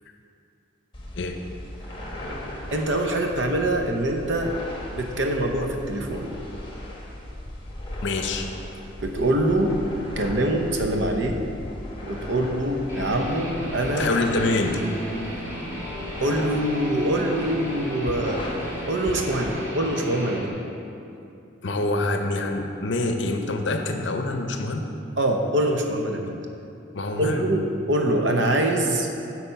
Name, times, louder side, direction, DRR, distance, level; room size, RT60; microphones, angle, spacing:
sound 1, 0.9-19.5, left 1 dB, 25° left, 1.0 m, -37 dB
voice 1, 2.7-4.5 4.9-6.3 9.0-9.8 10.2-11.4 12.0-14.1 16.2-18.5 18.9-20.5 25.2-26.3 27.2-27.6 27.9-29.1, right 1 dB, 65° right, 3 dB, 0.8 m, -24 dB
voice 2, 8.0-8.5 14.0-14.8 21.6-24.8 26.9-27.5, left 2 dB, 65° left, 5 dB, 0.6 m, -26 dB
Guitar, 12.9-20.5, equal, 10° right, 1.3 m, -35 dB
8.5 x 4.2 x 5.7 m, 2.7 s
head